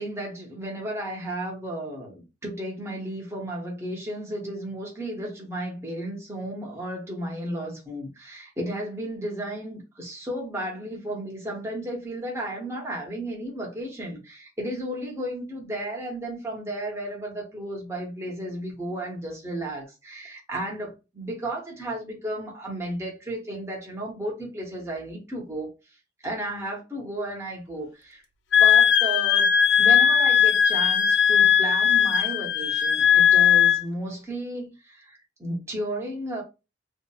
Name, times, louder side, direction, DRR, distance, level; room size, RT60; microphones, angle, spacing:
voice 1, 0.0-25.7 26.2-28.2 28.6-29.5 29.8-36.4, right 1 dB, 15° right, 0.7 m, -33 dB
Wind instrument woodwind instrument, 28.5-33.8, left 8 dB, 60° left, 0.3 m, -18 dB
2.7 x 2.5 x 2.3 m
head